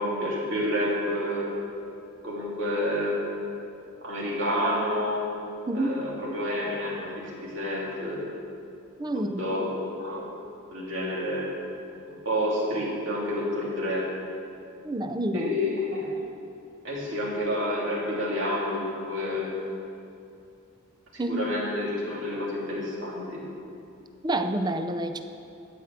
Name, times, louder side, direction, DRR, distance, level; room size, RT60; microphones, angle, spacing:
voice 1, 0.0-1.4 2.2-3.3 4.0-5.2 5.7-8.3 9.0-10.3 10.7-11.5 12.1-14.1 15.3-16.1 16.8-19.5 21.1-23.4, left 1 dB, 65° right, -5 dB, 3.1 m, -29 dB
voice 2, 5.7-6.1 9.0-9.4 14.8-15.6 21.2-21.4 24.2-25.2, right 1 dB, 20° right, 8 dB, 0.5 m, -28 dB
13.0 x 5.3 x 7.9 m, 2.6 s
head